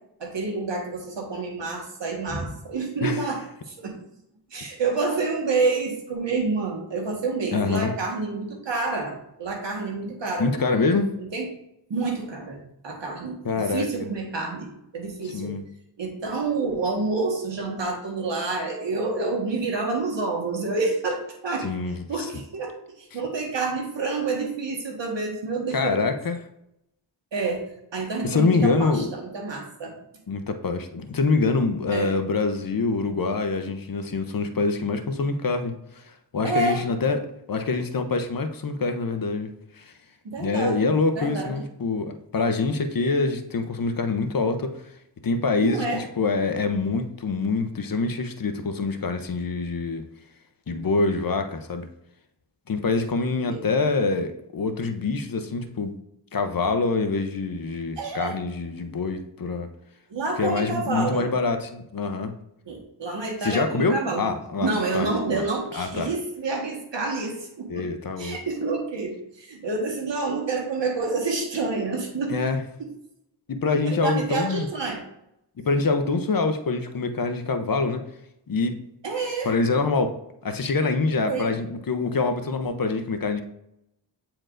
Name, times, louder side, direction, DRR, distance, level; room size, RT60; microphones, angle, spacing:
voice 1, 0.2-4.0 4.5-10.5 11.2-11.5 11.9-15.5 16.0-21.7 22.1-26.0 27.3-30.0 31.9-32.1 36.4-36.8 40.2-40.9 41.1-41.5 45.6-46.0 53.4-53.6 58.0-58.3 60.1-61.3 62.7-64.2 64.6-67.9 68.2-72.4 73.8-75.0 79.0-79.5 81.2-81.6, right 3 dB, 70° right, 0 dB, 1.6 m, -28 dB
voice 2, 7.5-7.9 10.4-11.1 13.4-13.9 15.3-15.6 21.6-22.3 25.7-26.4 28.2-29.1 30.3-37.2 37.5-39.5 39.8-39.9 40.4-44.8 45.2-50.0 50.7-51.9 52.7-56.0 56.3-59.7 60.4-62.3 63.4-65.4 65.7-66.1 67.7-68.4 72.3-72.6 73.5-74.7 75.6-78.0 78.5-78.8 79.4-80.2 80.4-83.4, left 3 dB, 50° left, 7 dB, 0.8 m, -25 dB
8.8 x 4.4 x 2.6 m, 0.79 s
cardioid pair, 50°, 45 cm